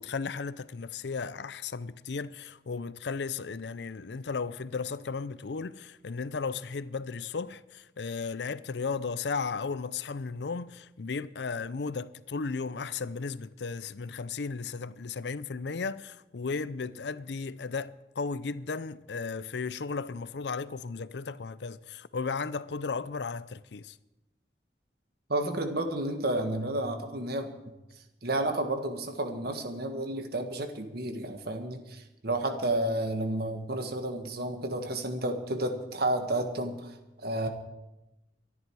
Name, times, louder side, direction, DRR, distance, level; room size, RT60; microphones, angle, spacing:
voice 1, 0.0-24.0, left 4 dB, 70° left, 0.5 m, -35 dB
voice 2, 25.3-27.6 28.2-37.0 37.2-37.5, right 1 dB, 65° right, 1.7 m, -31 dB
24.0 x 11.0 x 4.7 m
head